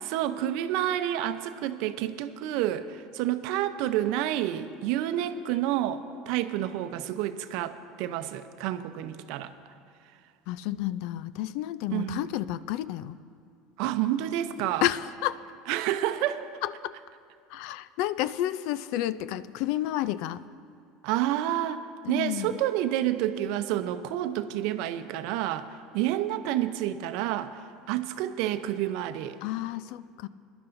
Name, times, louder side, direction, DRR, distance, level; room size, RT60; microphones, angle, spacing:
voice 1, 0.1-9.5 11.9-12.2 13.8-14.9 15.7-16.5 21.0-21.8 22.1-25.7 25.9-27.6 27.9-29.4, right 12 dB, 70° right, 10 dB, 0.7 m, -29 dB
voice 2, 10.5-13.2 14.8-15.4 16.6-16.9 17.5-20.4 22.0-22.6 29.4-30.3, left 13 dB, 70° left, 16 dB, 0.4 m, -31 dB
21.5 x 11.5 x 2.6 m, 2.4 s
hypercardioid pair, 90°, 0 cm